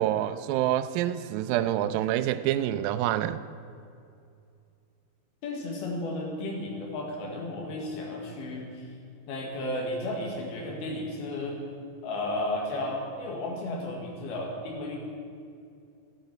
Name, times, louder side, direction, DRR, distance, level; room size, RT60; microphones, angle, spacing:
voice 1, 0.0-3.4, right 12 dB, 80° right, 11 dB, 2.2 m, -27 dB
voice 2, 5.4-8.9 9.3-11.6 12.0-15.0, left 1 dB, 85° left, -1 dB, 3.8 m, -33 dB
13.0 x 9.1 x 9.4 m, 2.5 s
omnidirectional pair, 4.4 m